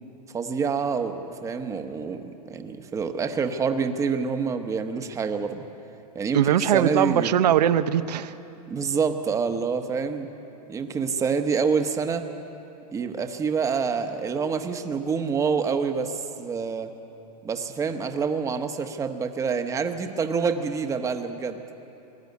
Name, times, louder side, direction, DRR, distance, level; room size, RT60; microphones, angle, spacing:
voice 1, 0.3-5.6 6.1-7.3 8.7-10.3 10.7-12.3 12.9-16.9 17.4-21.6, right 5 dB, 15° right, 7 dB, 1.0 m, -27 dB
voice 2, 6.3-8.4, right 10 dB, 80° right, 11 dB, 0.8 m, -21 dB
21.0 x 13.0 x 9.5 m, 2.8 s
hypercardioid pair, 135°, 21 cm